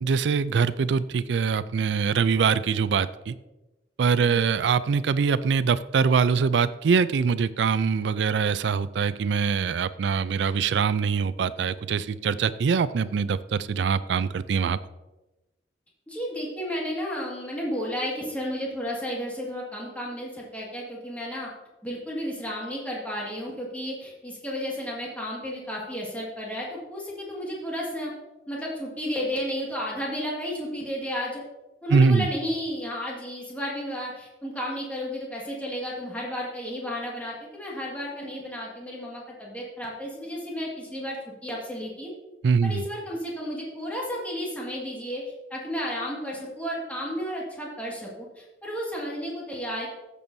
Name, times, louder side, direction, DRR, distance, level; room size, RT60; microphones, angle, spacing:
voice 1, 0.0-3.3 4.0-14.8 31.9-32.3 42.4-42.8, right 5 dB, 70° right, 16 dB, 0.4 m, -23 dB
voice 2, 4.2-4.5 16.1-21.5 21.8-28.1 28.5-31.4 31.8-41.2 41.4-42.1 42.6-49.9, equal, 10° left, -4 dB, 1.9 m, -33 dB
14.5 x 6.9 x 2.7 m, 1.1 s
head